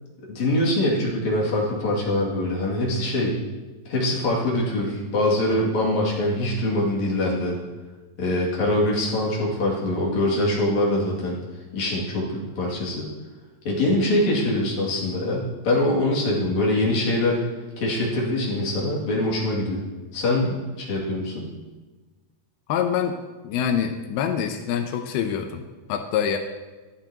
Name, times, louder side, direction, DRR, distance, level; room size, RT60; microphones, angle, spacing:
voice 1, 0.3-3.3 3.8-7.6 8.2-11.4 11.7-13.1 13.6-17.4 17.8-19.8 20.1-21.4, left 1 dB, 50° left, -5 dB, 3.5 m, -23 dB
voice 2, 22.7-23.2 23.4-25.6 25.9-26.4, left 8 dB, 85° left, 5 dB, 2.7 m, -25 dB
15.0 x 11.5 x 2.9 m, 1.2 s
omnidirectional pair, 4.4 m